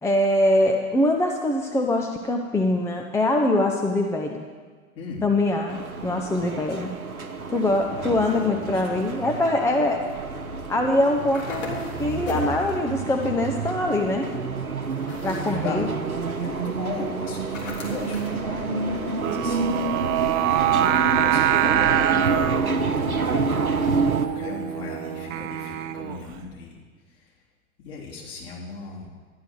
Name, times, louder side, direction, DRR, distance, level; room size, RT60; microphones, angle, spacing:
voice 1, 0.0-4.5 5.2-6.9 7.5-10.0 10.7-14.3 15.2-15.9, left 1 dB, 5° left, 3 dB, 0.6 m, -23 dB
voice 2, 4.9-5.3 7.9-9.0 15.3-15.9 16.4-19.8 20.7-23.5 24.2-26.8 27.1-27.3 27.8-29.1, left 4 dB, 45° left, -3 dB, 3.3 m, -37 dB
sound 1, 5.7-24.3, right 4 dB, 85° right, 1.0 m, -28 dB
sound 2, 11.3-12.6 14.9-15.7 17.5-18.4, left 3 dB, 60° left, 3.3 m, -38 dB
Singing, 19.2-26.3, right 12 dB, 35° right, 0.6 m, -25 dB
12.0 x 10.5 x 6.1 m, 1.5 s
figure-of-eight pair, 90°, 42 cm